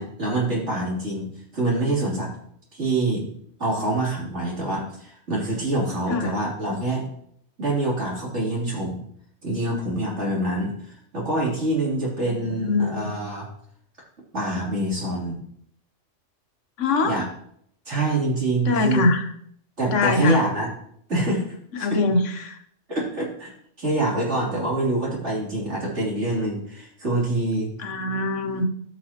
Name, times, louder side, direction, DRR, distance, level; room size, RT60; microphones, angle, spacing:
voice 1, 0.0-2.3 2.7-3.3 3.6-7.1 7.6-9.0 9.4-10.7 11.1-13.5 14.3-15.4 17.0-17.2 17.9-19.0 19.8-20.7 21.1-21.4 21.8-21.9 22.9-23.5 23.8-27.7, right 2 dB, 70° right, -4 dB, 3.3 m, -25 dB
voice 2, 12.3-13.1 16.8-17.2 18.7-19.2 19.9-20.4 21.8-22.6 27.8-28.6, left 3 dB, 85° left, 6 dB, 1.3 m, -23 dB
14.0 x 6.2 x 2.9 m, 0.67 s
omnidirectional pair, 1.2 m